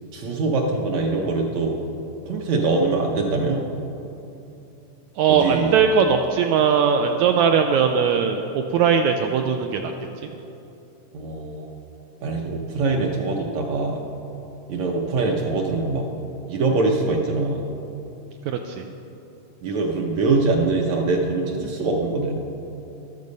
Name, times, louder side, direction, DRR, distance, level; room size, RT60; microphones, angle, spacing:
voice 1, 0.1-1.8 2.3-3.6 5.3-5.7 11.1-11.7 12.2-14.0 14.7-16.0 16.5-17.6 19.6-22.4, right 3 dB, 65° right, 0 dB, 1.9 m, -23 dB
voice 2, 5.2-9.9 18.5-18.8, right 6 dB, 85° right, 4 dB, 1.7 m, -19 dB
13.5 x 12.5 x 5.3 m, 2.8 s
omnidirectional pair, 3.8 m